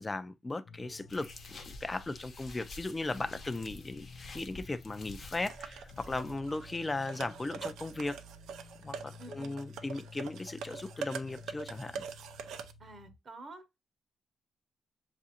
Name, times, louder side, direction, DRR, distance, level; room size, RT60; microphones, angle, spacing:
voice 1, 0.0-8.2 8.8-12.0, left 2 dB, 20° left, 0.4 m, -37 dB
sound 1, 0.6-13.2, left 4 dB, 85° left, 0.6 m, -53 dB
sound 2, 1.1-6.4, left 2 dB, 45° left, 0.8 m, -49 dB
sound 3, 5.5-12.7, right 6 dB, 90° right, 0.5 m, -44 dB
voice 2, 9.2-9.6 12.8-13.6, right 2 dB, 40° right, 0.9 m, -49 dB
7.3 x 2.5 x 2.8 m
cardioid pair, 115°, 0 cm